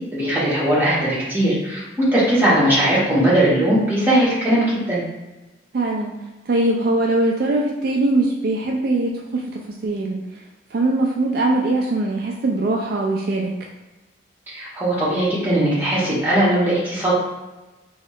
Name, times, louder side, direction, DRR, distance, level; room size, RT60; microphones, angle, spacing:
voice 1, 0.1-5.0 14.5-17.1, right 1 dB, 10° right, -9 dB, 1.1 m, -19 dB
voice 2, 5.7-6.1 6.5-10.2 10.7-13.5, right 2 dB, 50° right, -1 dB, 0.3 m, -21 dB
3.0 x 2.8 x 3.0 m, 1.1 s
head